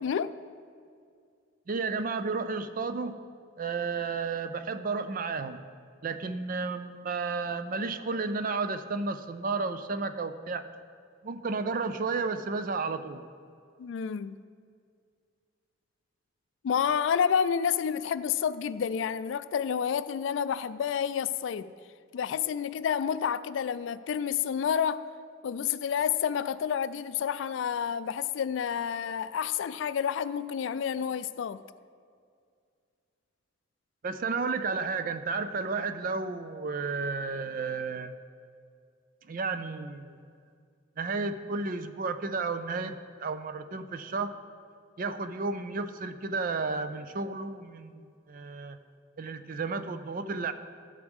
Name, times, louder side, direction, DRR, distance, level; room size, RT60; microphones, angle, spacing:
voice 1, 0.0-0.3 13.8-14.4 16.6-21.7 22.1-25.0 25.4-31.6, left 7 dB, 75° left, 15 dB, 0.3 m, -29 dB
voice 2, 1.7-3.1 3.6-5.6 6.0-10.6 11.2-13.2 34.0-38.1 39.3-40.2 41.0-44.3 45.0-48.8 49.2-50.5, right 4 dB, 45° right, 10 dB, 0.4 m, -32 dB
12.0 x 8.0 x 3.5 m, 2.2 s
head